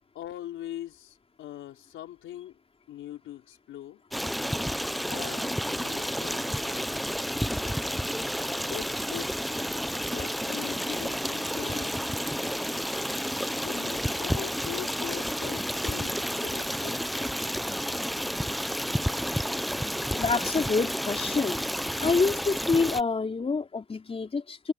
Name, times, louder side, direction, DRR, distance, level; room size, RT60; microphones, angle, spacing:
voice 1, 0.1-2.6 2.9-4.0 5.1-6.5 8.6-12.0 13.5-17.1, left 12 dB, 80° left, 4.7 m, -41 dB
Stream, 4.1-23.0, equal, ahead, 0.9 m, -31 dB
voice 2, 20.1-21.6 22.0-24.7, left 4 dB, 30° left, 4.3 m, -27 dB
cardioid pair, 90°, 20 cm